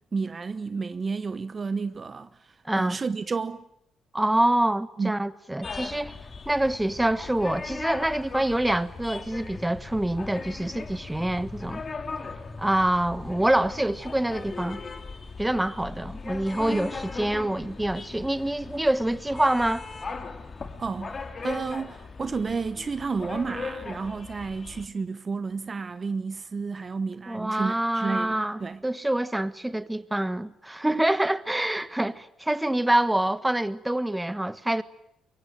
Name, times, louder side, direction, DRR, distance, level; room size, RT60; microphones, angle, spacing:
voice 1, 0.0-3.7 5.0-5.2 16.6-16.8 20.8-28.8, right 4 dB, 35° right, 1.0 m, -31 dB
voice 2, 2.7-3.0 4.1-6.1 6.5-11.8 12.6-14.8 15.4-19.9 27.3-34.8, right 1 dB, 10° right, 1.4 m, -26 dB
sound 1, 5.6-24.9, left 4 dB, 35° left, 3.3 m, -38 dB
25.5 x 22.5 x 9.2 m
cardioid pair, 90°, 0 cm